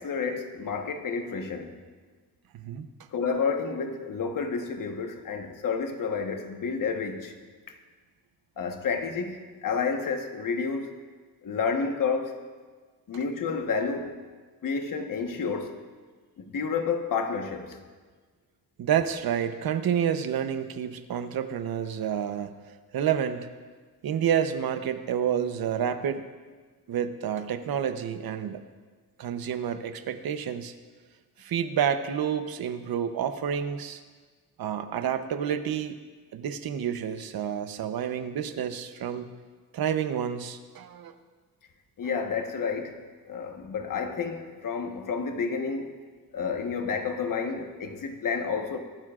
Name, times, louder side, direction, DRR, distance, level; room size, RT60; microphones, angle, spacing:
voice 1, 0.0-1.7 3.1-7.3 8.6-10.9 11.4-12.3 13.1-14.2 14.6-15.7 16.4-17.8 42.0-43.0 43.3-46.0 46.3-48.8, left 5 dB, 60° left, 1.3 m, -30 dB
voice 2, 2.5-2.9 18.8-22.5 22.9-23.5 24.0-26.2 26.9-28.6 29.2-30.7 31.4-34.0 34.6-36.0 36.3-39.3 39.7-41.1, right 8 dB, 75° right, 0.9 m, -29 dB
23.0 x 12.0 x 2.5 m
wide cardioid pair, 135°, 36 cm